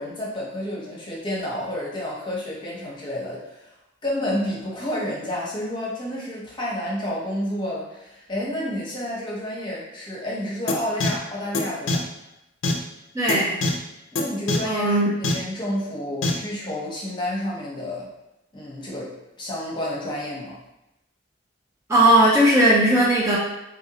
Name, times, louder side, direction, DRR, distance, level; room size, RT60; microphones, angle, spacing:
voice 1, 0.0-3.6 4.0-12.0 14.1-18.1 18.5-20.5, left 1 dB, 25° left, -5 dB, 0.8 m, -30 dB
sound 1, 10.7-10.8 11.0-11.1 11.5-11.6 11.9-12.0 12.6-12.7 13.3-13.4 13.6-13.7 14.2-14.3 14.5-14.6 15.2-15.3 16.2-16.3, left 3 dB, 85° left, 0.5 m, -22 dB
voice 2, 13.1-13.6 14.6-15.1 21.9-23.4, right 1 dB, 15° right, -6 dB, 0.5 m, -17 dB
3.1 x 2.6 x 2.9 m, 0.92 s
head